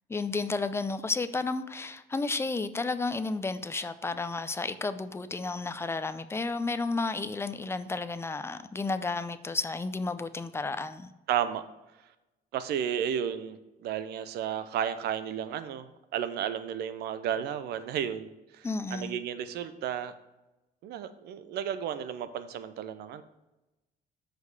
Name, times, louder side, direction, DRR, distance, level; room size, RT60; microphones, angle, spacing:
voice 1, 0.1-11.1 18.6-19.2, left 3 dB, 15° left, 0.5 m, -32 dB
voice 2, 11.3-11.6 12.5-20.1 20.8-23.2, right 9 dB, 75° right, 0.7 m, -33 dB
6.5 x 5.1 x 4.8 m
cardioid pair, 110°, 17 cm